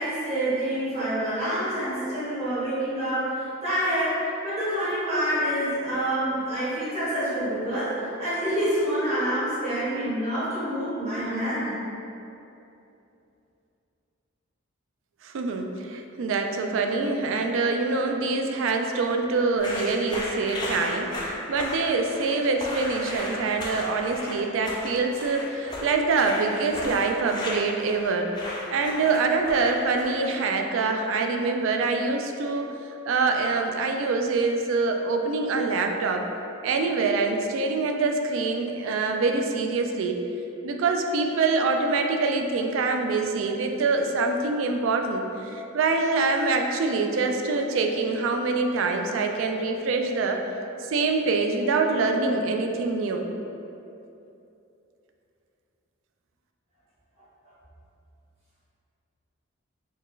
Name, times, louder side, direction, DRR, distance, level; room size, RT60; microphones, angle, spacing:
voice 1, 0.0-3.3 3.6-4.1 4.4-7.9 8.2-11.7, right 1 dB, 30° right, -12 dB, 1.2 m, -27 dB
voice 2, 15.2-28.3 28.7-32.7 33.1-36.3 36.6-40.2 40.6-50.4 50.9-53.3, right 3 dB, 65° right, 4 dB, 0.3 m, -25 dB
sound 1, 19.6-30.4, left 1 dB, 20° left, 0.4 m, -35 dB
4.4 x 2.3 x 3.1 m, 2.8 s
head